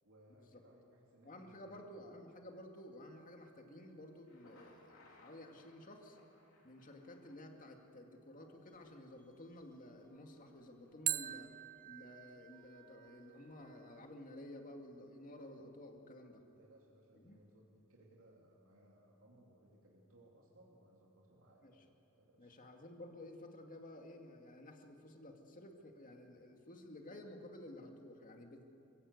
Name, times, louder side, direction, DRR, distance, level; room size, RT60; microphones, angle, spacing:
voice 1, 0.0-1.8 16.6-21.8 22.1-22.5, right 1 dB, 75° right, -3 dB, 2.8 m, -65 dB
voice 2, 1.2-6.2 6.6-11.5 11.8-16.4 17.1-17.4 21.6-21.7 22.4-28.7, left 1 dB, 40° left, 3 dB, 2.4 m, -53 dB
sound 1, 3.0-4.0 11.1-14.0, right 13 dB, 40° right, 0.4 m, -44 dB
Thunder, 4.1-8.1, left 2 dB, 85° left, 3.5 m, -66 dB
sound 2, 8.4-14.2, equal, 10° left, 2.9 m, -70 dB
27.5 x 17.0 x 8.1 m, 2.8 s
head